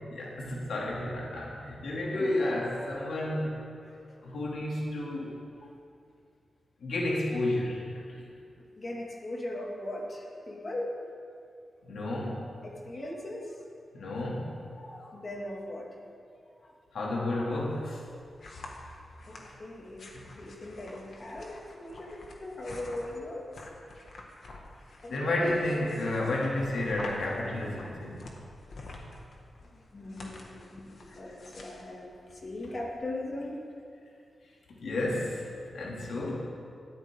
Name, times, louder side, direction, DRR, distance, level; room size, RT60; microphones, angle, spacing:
voice 1, 0.1-3.6 4.2-5.4 6.8-8.3 11.9-12.5 13.9-14.6 16.9-18.0 20.1-20.2 25.1-28.3 34.7-35.4 35.7-36.4, left 1 dB, 80° left, -3 dB, 2.7 m, -31 dB
voice 2, 8.8-11.0 12.6-13.6 14.8-16.0 16.6-16.8 19.3-20.1 20.3-23.5 25.0-25.5 29.9-33.6, left 1 dB, 35° left, -2 dB, 2.4 m, -39 dB
sound 1, 17.6-32.9, left 2 dB, 55° left, 1.9 m, -48 dB
19.5 x 14.0 x 3.8 m, 2.4 s
wide cardioid pair, 160°, 0 cm